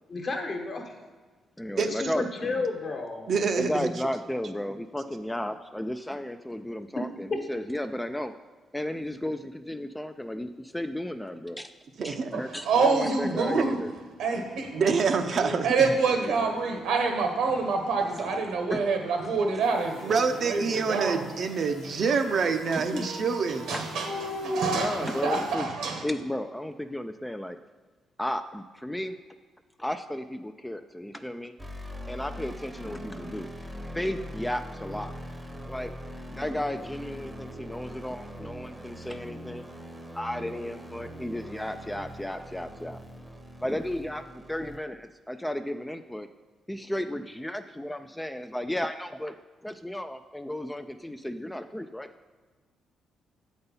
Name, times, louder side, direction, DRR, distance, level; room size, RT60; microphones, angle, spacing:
voice 1, 0.1-0.9 1.8-3.3, left 3 dB, 45° left, 1.2 m, -32 dB
voice 2, 1.6-2.6 3.6-8.3 8.7-11.7 12.0-13.9 16.1-16.5 18.2-18.3 18.7-18.8 21.6-21.7 22.7-23.1 23.7-23.9 24.4-25.7 26.0-27.6 28.2-29.2 29.8-31.5 32.1-33.5 33.8-35.1 35.7-35.9 36.3-39.7 40.1-43.0 43.6-46.3 46.7-49.4 49.6-52.1, left 1 dB, 5° left, 0.3 m, -34 dB
voice 3, 3.3-3.9 12.0-12.3 14.7-15.7 20.0-23.7, right 5 dB, 55° right, 0.7 m, -26 dB
voice 4, 12.3-13.8 14.2-14.8 15.3-20.2 20.4-21.2 22.1-22.3 22.7-26.0, right 4 dB, 80° right, 1.4 m, -27 dB
sound 1, 19.6-25.5, left 5 dB, 85° left, 0.9 m, -48 dB
sound 2, 31.6-44.8, equal, 10° right, 0.8 m, -42 dB
7.8 x 4.1 x 5.4 m
cardioid pair, 90°, 0 cm